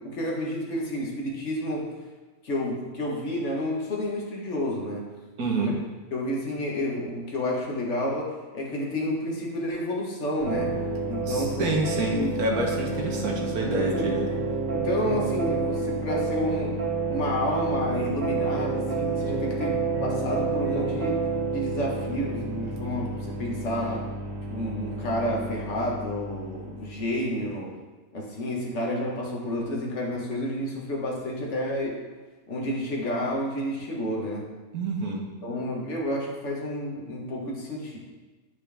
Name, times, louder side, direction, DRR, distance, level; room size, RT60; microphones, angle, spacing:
voice 1, 0.0-2.0 2.4-5.1 5.6-5.7 6.1-11.7 12.1-12.3 13.8-14.1 14.7-21.2 21.5-24.1 24.5-27.8 28.1-32.0 32.5-34.5 35.4-38.0, left 1 dB, 45° left, -2 dB, 1.5 m, -30 dB
voice 2, 5.4-5.7 11.3-14.2 34.7-35.2, right 2 dB, 60° right, 0 dB, 1.6 m, -27 dB
sound 1, 10.4-27.1, right 3 dB, 80° right, 2.3 m, -29 dB
9.1 x 5.3 x 3.4 m, 1.2 s
omnidirectional pair, 1.9 m